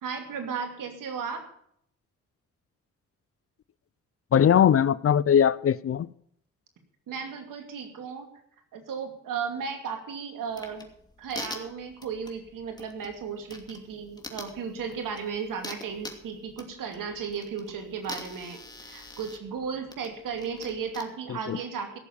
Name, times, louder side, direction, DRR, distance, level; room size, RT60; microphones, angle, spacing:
voice 1, 0.0-1.4 7.1-8.3 8.7-10.9 11.2-22.0, right 6 dB, 75° right, 2.6 m, -35 dB
voice 2, 4.3-6.1 21.3-21.6, left 9 dB, 45° left, 0.5 m, -21 dB
sound 1, 10.5-21.0, left 2 dB, 10° left, 2.6 m, -45 dB
17.0 x 7.0 x 7.1 m
supercardioid pair, 55°, 32 cm